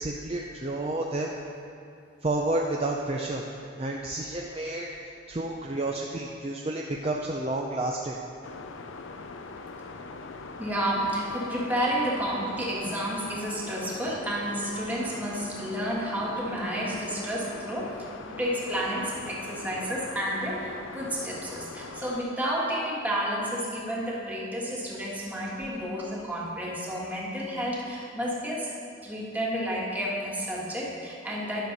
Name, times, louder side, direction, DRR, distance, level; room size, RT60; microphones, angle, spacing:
voice 1, 0.0-1.3 2.2-3.4 3.8-4.9 5.3-8.2, right 2 dB, 30° right, -1 dB, 0.5 m, -30 dB
sound 1, 8.4-22.2, left 3 dB, 85° left, 0.6 m, -41 dB
voice 2, 10.6-28.7 29.0-31.7, equal, 10° right, -5 dB, 1.5 m, -31 dB
sound 2, 10.9-13.7, left 3 dB, 70° left, 1.2 m, -46 dB
11.5 x 6.5 x 5.2 m, 2.6 s
head